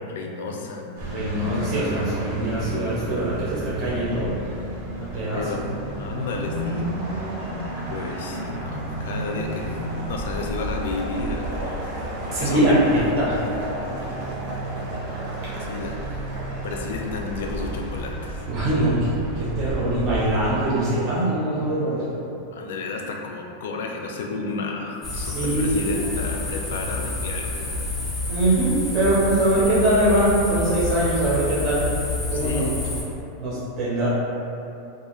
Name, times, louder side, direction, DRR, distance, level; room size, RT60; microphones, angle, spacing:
voice 1, 0.0-0.9 5.3-5.6 5.9-7.3 7.9-11.9 12.2-12.9 15.6-16.3 16.6-18.4 22.5-27.9 32.3-32.7, left 3 dB, 80° left, 1 dB, 0.3 m, -32 dB
sound 1, 1.0-20.7, right 1 dB, 70° right, 0.8 m, -31 dB
voice 2, 1.1-4.3 5.0-5.4 12.3-13.3 15.4-15.5 18.5-22.0 25.2-25.8 28.3-31.8 32.3-32.6 33.4-34.1, right 1 dB, 30° right, -9 dB, 0.6 m, -22 dB
sound 2, 25.0-33.0, left 2 dB, 15° left, 0.5 m, -29 dB
2.5 x 2.4 x 2.9 m, 2.8 s
supercardioid pair, 170°, 0 cm